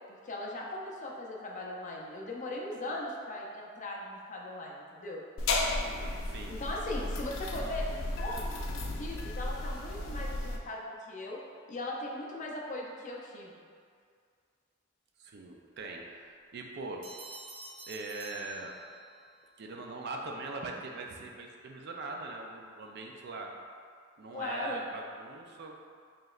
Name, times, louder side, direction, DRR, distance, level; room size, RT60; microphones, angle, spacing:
voice 1, 0.1-5.2 6.5-11.4 11.7-13.6 24.3-24.8, left 1 dB, 40° left, -2 dB, 0.5 m, -39 dB
sound 1, 5.4-10.6, left 2 dB, 85° left, 0.5 m, -34 dB
voice 2, 5.7-6.6 15.2-17.1 17.9-18.7 19.6-23.5 24.2-25.8, right 3 dB, 55° right, 1 dB, 0.4 m, -42 dB
sound 2, 17.0-19.3, right 2 dB, 70° right, 0.9 m, -48 dB
4.9 x 3.0 x 2.4 m, 2.2 s
head